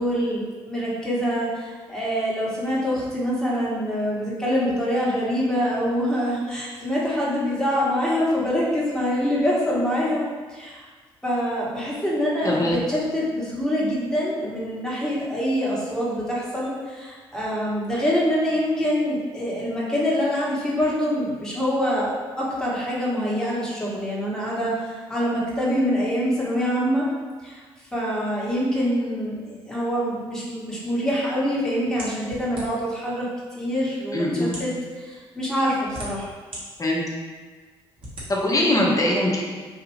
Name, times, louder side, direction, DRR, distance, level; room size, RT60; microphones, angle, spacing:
voice 1, 0.0-10.9 11.2-22.1 22.4-27.0 27.4-27.6 27.9-36.3, equal, 5° left, -7 dB, 1.2 m, -25 dB
voice 2, 12.4-12.8 34.1-34.6 36.8-37.0 38.3-39.4, left 1 dB, 25° left, -2 dB, 0.8 m, -22 dB
sound 1, 32.0-33.0 33.8-33.9 34.4-34.8 35.5-36.6 37.1-37.2 38.0-38.3, right 1 dB, 40° right, 1.2 m, -37 dB
3.2 x 2.4 x 3.1 m, 1.5 s
hypercardioid pair, 45°, 13 cm